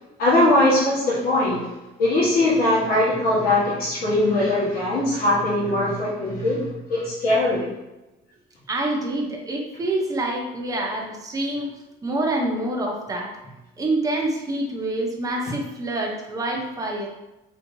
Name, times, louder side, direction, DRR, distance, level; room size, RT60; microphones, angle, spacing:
voice 1, 0.2-1.6 2.0-7.7, left 1 dB, 65° left, -7 dB, 1.2 m, -21 dB
voice 2, 8.7-11.7 12.0-13.3 13.8-17.1, right 1 dB, 20° right, -1 dB, 0.8 m, -26 dB
3.5 x 2.8 x 2.6 m, 0.99 s
cardioid pair, 110°, 17 cm